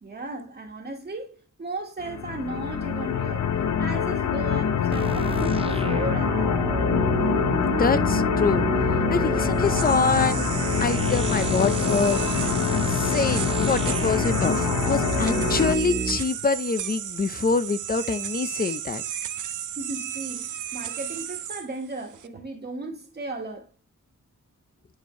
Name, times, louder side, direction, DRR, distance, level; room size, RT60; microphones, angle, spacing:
voice 1, 0.0-3.5 3.8-6.7 19.7-23.7, right 2 dB, 35° right, 1.6 m, -36 dB
sound 1, 2.0-15.8, left 8 dB, 70° left, 1.0 m, -25 dB
sound 2, 4.9-16.2, right 4 dB, 20° right, 0.6 m, -30 dB
voice 2, 7.8-8.7 9.1-10.5 10.8-12.2 12.9-19.0, left 4 dB, 30° left, 0.7 m, -25 dB
sound 3, 9.4-22.3, right 10 dB, 90° right, 0.7 m, -34 dB
9.7 x 4.6 x 3.1 m
wide cardioid pair, 115°, 29 cm